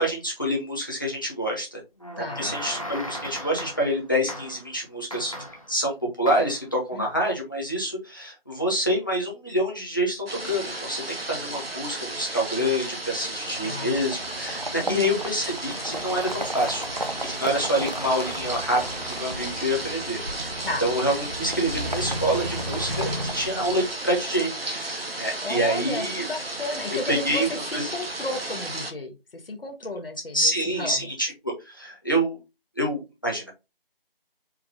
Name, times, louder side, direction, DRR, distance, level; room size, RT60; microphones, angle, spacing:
voice 1, 0.0-1.8 2.1-5.3 5.7-18.8 19.2-20.5 20.8-26.3 27.1-27.5 27.7-27.9 30.3-32.4 32.8-33.5, equal, 20° left, -1 dB, 1.0 m, -27 dB
sound 1, 2.0-4.0 4.3-4.7 5.1-5.7 6.3-6.6, equal, 35° left, 0.6 m, -37 dB
voice 2, 2.2-2.5 6.9-7.1 13.6-14.0 14.8-15.2 20.6-20.8 25.4-31.1, left 2 dB, 70° left, 5 dB, 1.0 m, -33 dB
sound 2, 10.3-28.9, right 2 dB, 85° right, 1.1 m, -34 dB
sound 3, 13.3-24.2, right 1 dB, 45° right, 0.5 m, -34 dB
4.6 x 2.3 x 3.6 m, 0.25 s
figure-of-eight pair, 175°, 29 cm